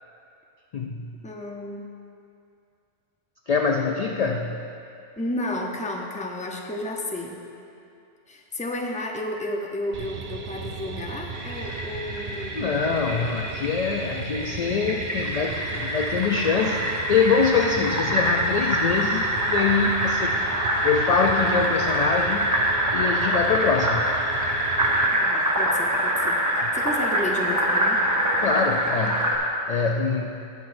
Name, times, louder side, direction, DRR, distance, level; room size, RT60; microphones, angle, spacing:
voice 1, 0.7-1.1 3.5-4.7 12.5-20.4 20.8-22.5 22.9-24.1 28.4-29.4 29.7-30.5, left 5 dB, 55° left, 2 dB, 0.4 m, -24 dB
voice 2, 1.2-1.8 5.2-7.5 8.3-12.7 25.1-28.0, left 1 dB, 10° left, 0 dB, 0.5 m, -32 dB
sound 1, 9.9-25.1, right 4 dB, 50° right, 0.7 m, -36 dB
Fill (with liquid), 11.3-29.4, equal, 20° right, 0.9 m, -25 dB
18.5 x 6.1 x 2.6 m, 2.6 s
omnidirectional pair, 1.1 m